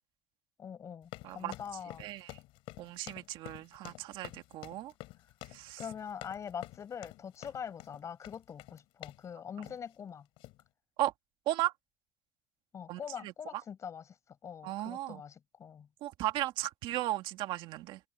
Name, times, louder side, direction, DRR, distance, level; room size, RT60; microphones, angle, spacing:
voice 1, 0.6-2.0 5.8-10.3 12.7-14.0 14.4-15.9, left 7 dB, 30° left, 5.7 m, -43 dB
sound 1, 1.0-9.3 9.6-9.9 10.4-10.6, left 20 dB, 65° left, 6.0 m, -49 dB
voice 2, 2.0-2.4 2.8-4.9 5.5-5.8 11.0-11.1 11.5-11.7 12.9-13.6 14.6-15.2 16.0-18.0, right 15 dB, 60° right, 2.1 m, -36 dB
cardioid pair, 135°, 10 cm